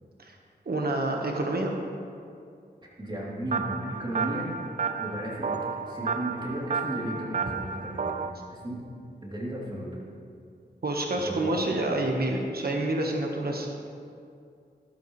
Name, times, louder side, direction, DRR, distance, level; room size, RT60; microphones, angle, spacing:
voice 1, 0.6-1.7 10.8-13.7, right 2 dB, 60° right, 1 dB, 1.3 m, -28 dB
voice 2, 3.0-4.5 5.0-8.8 9.2-9.9 11.1-11.8, right 1 dB, 25° right, -6 dB, 3.1 m, -35 dB
sound 1, 3.5-8.3, right 5 dB, 45° right, 0.5 m, -32 dB
12.5 x 12.5 x 3.2 m, 2.4 s
wide cardioid pair, 90°, 18 cm